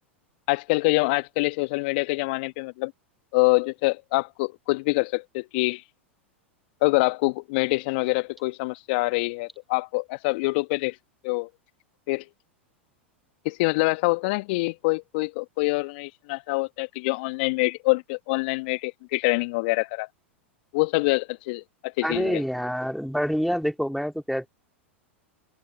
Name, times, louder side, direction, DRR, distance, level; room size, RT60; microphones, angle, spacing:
voice 1, 0.5-2.9 3.3-5.8 6.8-10.9 11.2-11.5 12.1-12.2 13.4-20.1 20.7-22.4, left 25 dB, 55° left, 1.5 m, -25 dB
voice 2, 22.0-24.5, equal, ahead, 2.8 m, -27 dB
figure-of-eight pair, 90°, 7 cm